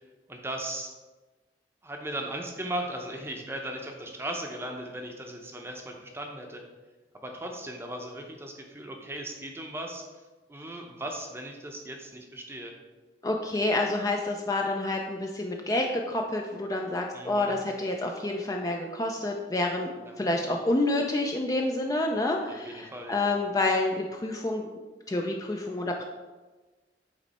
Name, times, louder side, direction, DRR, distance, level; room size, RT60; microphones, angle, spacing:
voice 1, 0.3-0.9 1.8-6.6 7.2-10.2 10.5-12.8 17.1-17.6 20.0-20.3 22.5-23.2, right 1 dB, 15° right, 2 dB, 0.7 m, -37 dB
voice 2, 13.2-24.7 25.1-26.0, left 2 dB, 20° left, 1 dB, 0.4 m, -28 dB
8.1 x 3.2 x 4.1 m, 1.2 s
head